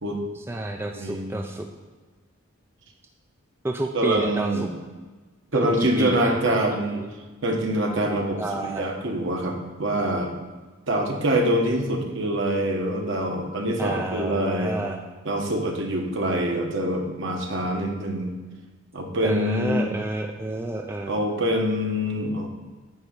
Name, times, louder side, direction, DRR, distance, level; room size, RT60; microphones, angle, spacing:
voice 1, 0.3-1.7 3.6-4.7 5.5-6.6 6.9-7.1 8.4-8.9 13.8-15.0 19.2-21.2, right 1 dB, 10° right, 2 dB, 0.3 m, -30 dB
voice 2, 0.9-1.4 3.9-4.7 5.5-7.0 7.4-10.3 10.9-14.8 15.2-18.3 18.9-19.9 21.1-22.5, right 1 dB, 60° right, 2 dB, 1.1 m, -25 dB
9.3 x 3.5 x 6.4 m, 1.3 s
head